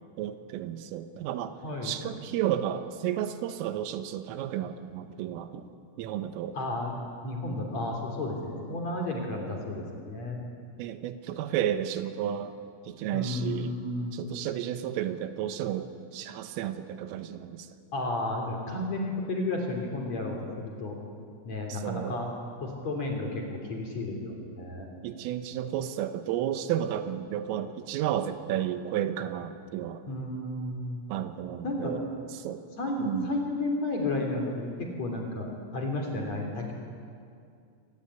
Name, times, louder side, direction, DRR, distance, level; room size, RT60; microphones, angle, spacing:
voice 1, 0.2-1.6 1.8-5.7 6.0-6.6 10.8-12.5 12.9-13.7 14.1-17.7 21.7-22.2 25.0-30.0 31.1-32.1 32.4-32.6 33.0-33.4, right 11 dB, 80° right, 9 dB, 3.6 m, -32 dB
voice 2, 1.6-2.0 6.5-6.9 7.2-10.4 13.1-14.3 17.9-21.0 21.4-22.3 22.6-24.9 30.1-31.0 31.6-31.9 32.8-36.7, left 2 dB, 40° left, 1 dB, 3.7 m, -32 dB
24.5 x 19.0 x 9.9 m, 2.4 s
omnidirectional pair, 5.9 m